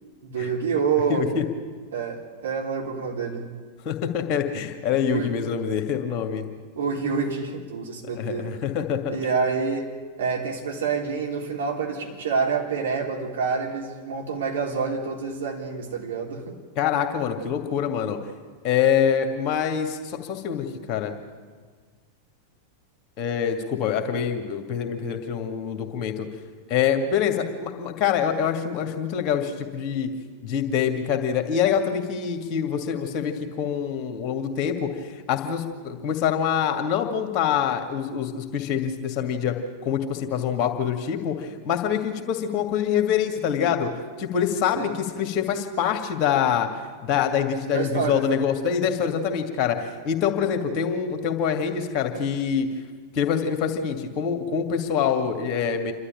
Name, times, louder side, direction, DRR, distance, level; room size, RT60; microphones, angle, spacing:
voice 1, 0.2-1.3 1.9-3.5 5.1-5.3 6.8-8.5 9.1-16.5 44.7-44.9 47.7-48.3, right 5 dB, 60° right, 0 dB, 3.5 m, -27 dB
voice 2, 1.1-1.4 3.8-6.4 8.1-9.3 16.8-18.2 18.6-21.1 23.2-26.3 26.7-30.1 30.4-34.9 35.3-39.6 39.8-43.9 44.2-46.7 47.0-52.7 53.1-55.9, left 8 dB, 35° left, 5 dB, 2.3 m, -25 dB
28.0 x 12.5 x 8.8 m, 1.5 s
figure-of-eight pair, 90°, 0 cm